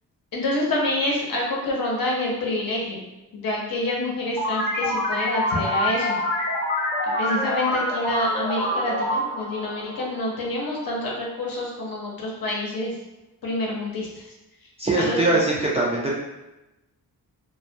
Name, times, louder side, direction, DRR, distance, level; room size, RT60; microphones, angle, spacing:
voice 1, 0.3-3.0 3.3-6.2 7.0-12.9 13.4-14.2 15.0-15.2, left 1 dB, 65° left, -3 dB, 0.7 m, -27 dB
sound 1, 4.4-10.6, left 1 dB, 25° left, 0.7 m, -26 dB
voice 2, 14.8-16.1, right 2 dB, 20° right, -6 dB, 0.3 m, -22 dB
2.2 x 2.1 x 2.6 m, 0.98 s
wide cardioid pair, 115°, 38 cm